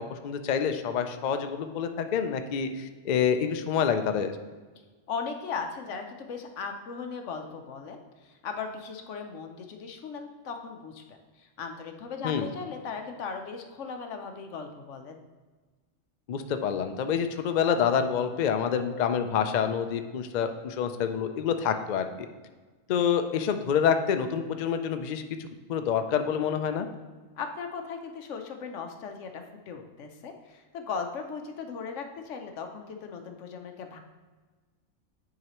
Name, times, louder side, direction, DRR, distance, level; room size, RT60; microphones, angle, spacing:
voice 1, 0.0-4.3 12.2-12.5 16.3-22.0 22.9-26.9, left 7 dB, 85° left, 7 dB, 0.4 m, -27 dB
voice 2, 5.1-15.2 27.4-34.0, left 5 dB, 70° left, 5 dB, 1.0 m, -38 dB
9.4 x 4.8 x 3.0 m, 1.4 s
omnidirectional pair, 1.4 m